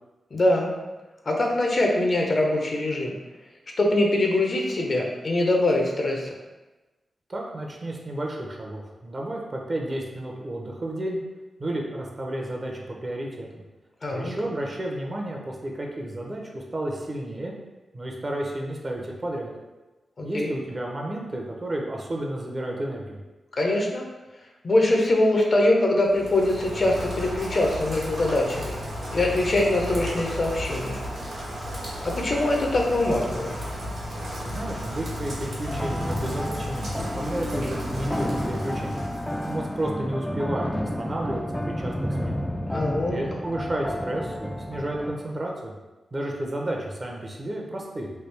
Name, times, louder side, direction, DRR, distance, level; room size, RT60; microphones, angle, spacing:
voice 1, 0.3-0.7 1.3-3.2 3.8-6.3 14.0-14.3 20.2-20.5 23.6-24.0 24.6-28.8 29.1-31.0 32.0-33.5 42.7-43.2, left 1 dB, 50° left, 0 dB, 0.6 m, -23 dB
voice 2, 7.3-11.2 11.6-13.6 14.1-17.5 17.9-19.5 20.2-23.2 34.4-39.0 39.4-41.9 42.2-42.4 43.1-45.7 46.1-48.1, right 1 dB, 40° right, -1 dB, 0.7 m, -32 dB
Rain, 26.0-39.8, equal, 75° right, 1.1 m, -34 dB
sound 1, 35.7-45.2, equal, 10° left, 0.3 m, -31 dB
3.3 x 2.3 x 3.3 m, 1.1 s
cardioid pair, 60°, 0 cm